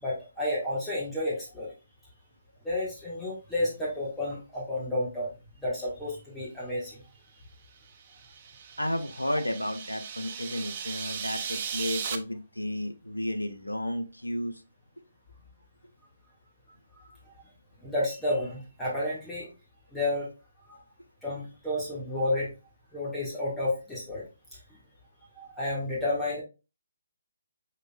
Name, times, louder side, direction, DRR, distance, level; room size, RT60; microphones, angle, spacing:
voice 1, 0.0-1.7 2.6-5.3 5.6-7.0 16.9-17.1 17.8-19.5 19.9-20.3 20.7-20.8 21.2-22.5 22.9-24.2 25.4-26.4, left 1 dB, 5° left, -8 dB, 1.5 m, -31 dB
sound 1, 8.0-12.2, right 7 dB, 35° right, 0.5 m, -37 dB
voice 2, 8.8-14.6, left 1 dB, 90° left, 8 dB, 0.6 m, -32 dB
5.0 x 4.4 x 2.2 m, 0.29 s
figure-of-eight pair, 140°, 0 cm